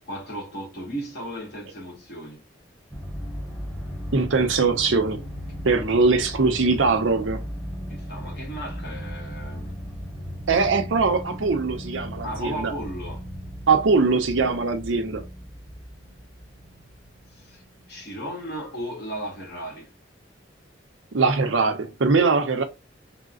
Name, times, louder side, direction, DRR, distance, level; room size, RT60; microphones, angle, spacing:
voice 1, 0.0-2.4 7.9-9.8 12.2-13.3 17.3-17.6 17.9-19.9, right 1 dB, 60° left, 1.4 m, -35 dB
sound 1, 2.9-18.6 19.0-19.1, equal, 5° right, 0.8 m, -37 dB
voice 2, 4.1-5.2 5.6-7.4 10.5-12.7 13.7-15.2 21.1-22.6, right 4 dB, 90° right, 0.7 m, -21 dB
3.6 x 2.0 x 2.3 m
head